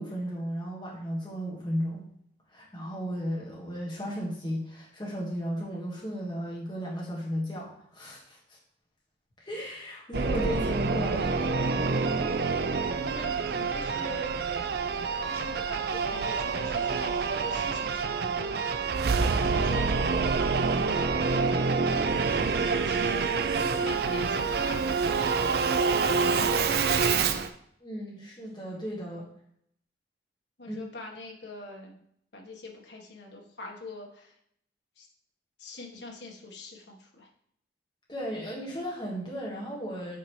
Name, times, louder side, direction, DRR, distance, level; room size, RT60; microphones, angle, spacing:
voice 1, 0.0-2.0 2.5-8.6 9.4-11.9 27.8-29.3 30.7-30.8 38.1-40.2, equal, 25° left, -5 dB, 1.6 m, -35 dB
Singing / Musical instrument, 10.1-27.5, right 4 dB, 60° right, 0.4 m, -27 dB
voice 2, 12.9-14.3 15.2-18.9 19.2-21.7 22.2-25.2 25.6-27.5 30.6-32.0 32.3-34.4 35.0-35.1 35.6-37.3, left 2 dB, 70° left, 0 dB, 1.4 m, -44 dB
8.3 x 4.1 x 3.2 m, 0.69 s
head